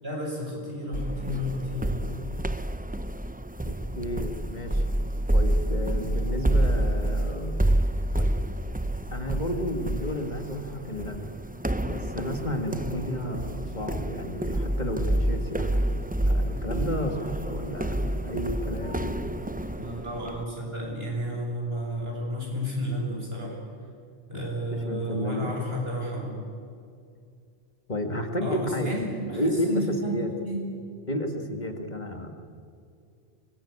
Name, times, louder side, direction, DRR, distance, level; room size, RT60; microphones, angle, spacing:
voice 1, 0.0-2.1 19.8-23.6 24.3-26.4 28.4-30.7, equal, 65° right, -2 dB, 7.3 m, -32 dB
sound 1, 0.9-20.4, right 1 dB, 10° right, 0.6 m, -28 dB
voice 2, 3.7-5.0 5.3-7.6 8.1-8.3 9.1-11.4 11.8-15.8 16.2-19.3 24.3-24.4 24.7-25.5 27.9-28.9 29.3-30.3 31.1-32.3, left 1 dB, 45° left, 5 dB, 2.0 m, -32 dB
25.0 x 20.0 x 8.6 m, 2.4 s
omnidirectional pair, 1.1 m